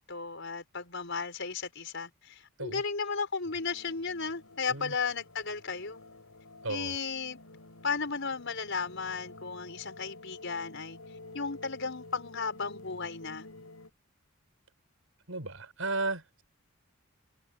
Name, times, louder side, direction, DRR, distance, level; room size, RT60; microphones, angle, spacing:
voice 1, 0.0-6.0 6.7-7.4 7.8-11.0 11.3-13.5, left 5 dB, 60° left, 5.9 m, -35 dB
sound 1, 3.4-13.9, left 2 dB, 90° left, 6.2 m, -51 dB
voice 2, 6.6-7.0 15.3-16.4, right 3 dB, 70° right, 6.8 m, -34 dB
head